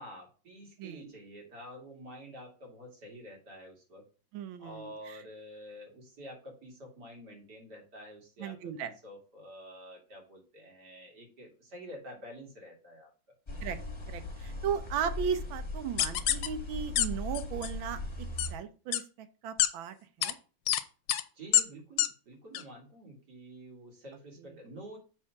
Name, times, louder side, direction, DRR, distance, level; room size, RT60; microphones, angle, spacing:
voice 1, 0.0-4.1 4.6-8.6 8.8-13.1 21.3-25.0, equal, 55° right, 0 dB, 2.9 m, -48 dB
voice 2, 0.8-1.1 4.3-5.2 8.4-8.9 13.6-13.8 14.1-20.4, right 8 dB, 80° right, 10 dB, 1.6 m, -36 dB
sound 1, 13.5-18.5, left 2 dB, 20° left, 0.9 m, -39 dB
sound 2, 16.0-16.5 17.0-17.1 17.3-17.7 18.4-18.5 18.9-19.0 19.6-19.7 20.2-20.3 20.7-20.8 21.1-21.2 21.5-21.6 22.0-22.1 22.5-22.6, left 12 dB, 75° left, 1.3 m, -26 dB
7.4 x 3.5 x 5.8 m, 0.37 s
omnidirectional pair, 2.1 m